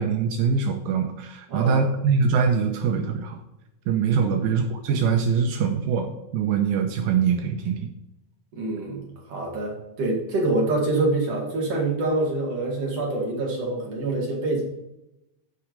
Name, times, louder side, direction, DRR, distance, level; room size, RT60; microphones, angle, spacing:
voice 1, 0.0-3.4 3.9-7.8, right 6 dB, 80° right, 4 dB, 2.5 m, -23 dB
voice 2, 1.5-1.9 4.3-4.6 8.5-14.6, right 2 dB, 45° right, -2 dB, 2.7 m, -26 dB
10.5 x 6.1 x 5.1 m, 0.89 s
omnidirectional pair, 4.5 m